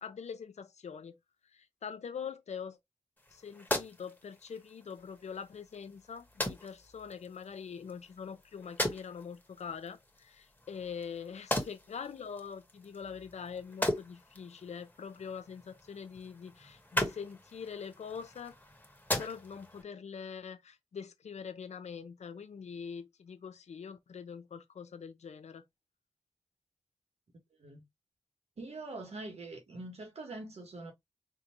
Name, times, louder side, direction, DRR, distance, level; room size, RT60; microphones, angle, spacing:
voice 1, 0.0-1.2 1.5-2.8 3.3-18.5 19.2-25.6, left 6 dB, 85° left, 0.7 m, -44 dB
sound 1, 3.2-19.8, left 1 dB, 15° left, 1.5 m, -40 dB
voice 2, 28.6-30.9, right 2 dB, 70° right, 1.6 m, -44 dB
3.7 x 2.8 x 3.0 m
cardioid pair, 60°, 11 cm